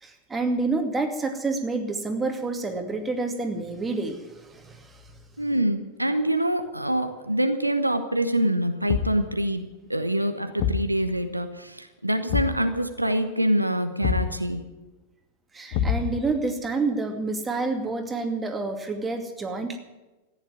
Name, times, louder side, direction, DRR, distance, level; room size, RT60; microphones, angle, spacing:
voice 1, 0.0-5.0 15.5-19.8, right 3 dB, 15° right, 4 dB, 2.4 m, -28 dB
voice 2, 5.4-14.6, right 1 dB, 90° right, 8 dB, 1.0 m, -25 dB
Thump thud, 8.9-9.3 10.6-10.9 12.3-12.7 14.0-14.4 15.7-16.3, left 8 dB, 50° left, 1.2 m, -26 dB
14.5 x 10.0 x 9.8 m, 1.1 s
figure-of-eight pair, 90°, 0 cm